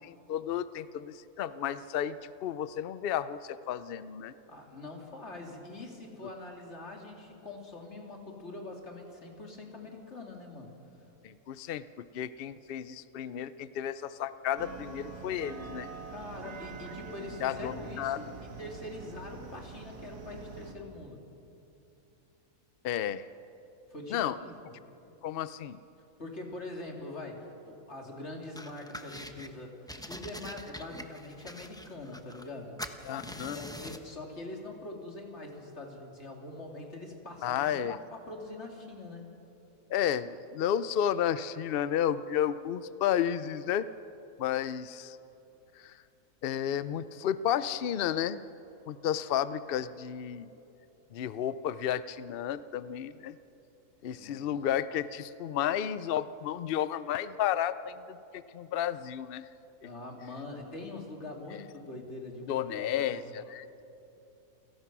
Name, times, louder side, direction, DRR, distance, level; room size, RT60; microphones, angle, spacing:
voice 1, 0.0-4.3 11.2-15.9 17.4-18.2 22.8-23.3 24.1-24.4 25.2-25.8 33.0-33.6 37.4-38.0 39.9-43.9 44.4-45.2 45.7-46.0 46.4-48.4 48.9-50.5 51.1-53.4 54.0-59.5 62.5-63.7, left 10 dB, 75° left, 15 dB, 0.5 m, -32 dB
voice 2, 4.5-10.8 16.1-21.2 23.9-24.5 26.2-29.8 30.1-32.8 33.2-37.6 38.1-39.3 54.0-54.3 59.8-63.3, left 2 dB, 45° left, 1 dB, 3.0 m, -43 dB
sound 1, 14.6-20.7, right 4 dB, 90° right, 2.2 m, -44 dB
sound 2, 28.6-29.5 29.9-32.5 32.8-34.1, equal, 5° left, 0.6 m, -44 dB
28.5 x 17.0 x 6.0 m, 2.9 s
omnidirectional pair, 1.6 m